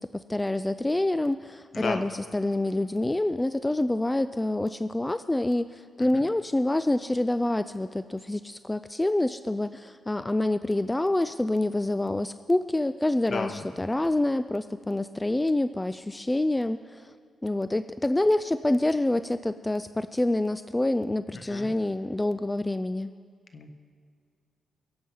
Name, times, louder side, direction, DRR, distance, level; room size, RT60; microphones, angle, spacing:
voice 1, 0.0-17.1 17.4-23.1, left 1 dB, 15° left, 12 dB, 0.3 m, -27 dB
voice 2, 13.3-13.6 21.5-21.7 23.5-23.7, left 4 dB, 55° left, 7 dB, 1.2 m, -32 dB
23.5 x 7.9 x 5.5 m, 2.2 s
cardioid pair, 90°, 0 cm